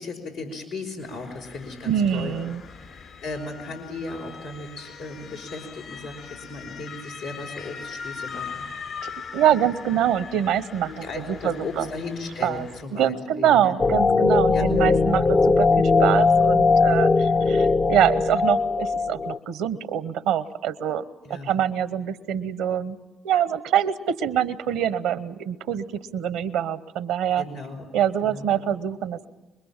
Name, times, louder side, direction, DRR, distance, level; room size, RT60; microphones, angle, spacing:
voice 1, 0.0-2.3 2.9-8.6 10.8-13.7 14.5-14.6 21.2-21.5 27.4-27.9 28.2-28.6, left 3 dB, 90° left, -2 dB, 4.6 m, -36 dB
Motor vehicle (road) / Siren, 1.0-12.8, left 6 dB, 60° left, 5.3 m, -41 dB
voice 2, 1.8-2.6 9.0-11.9 12.4-21.0 21.5-23.0 23.2-27.4 27.9-29.3, right 10 dB, 80° right, 16 dB, 0.9 m, -25 dB
sound 1, 13.8-19.4, left 4 dB, 45° left, 0.7 m, -19 dB
25.0 x 23.0 x 7.4 m, 1.1 s
hypercardioid pair, 50°, 0 cm